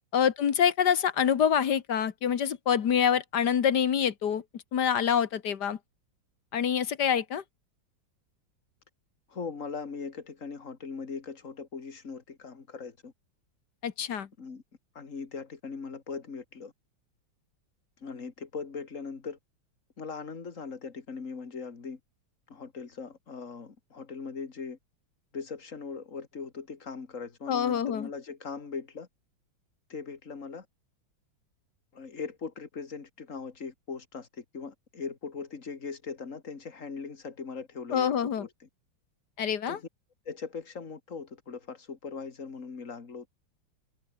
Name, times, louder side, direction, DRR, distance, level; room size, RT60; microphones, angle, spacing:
voice 1, 0.1-4.4 4.7-5.8 6.5-7.4 13.8-14.3 27.5-28.1 37.9-38.5 39.4-39.8, left 8 dB, 60° left, 1.9 m, -26 dB
voice 2, 9.3-13.1 14.4-14.6 14.9-16.7 18.0-19.4 20.0-22.0 22.5-24.8 25.3-29.1 29.9-30.7 31.9-38.7 39.7-39.9 40.3-43.3, left 5 dB, 40° left, 2.7 m, -40 dB
omnidirectional pair, 2.2 m